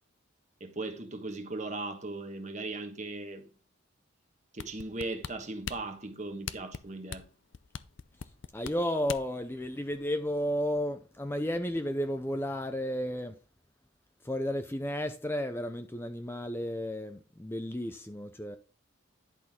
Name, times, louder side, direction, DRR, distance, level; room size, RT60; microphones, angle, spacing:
voice 1, 0.6-3.5 4.5-7.3, right 2 dB, 35° right, 1.4 m, -38 dB
sound 1, 4.6-9.4 9.9-10.0, left 6 dB, 60° left, 0.5 m, -40 dB
voice 2, 8.5-13.4 14.2-18.6, equal, 10° left, 0.5 m, -33 dB
11.0 x 6.0 x 3.7 m
head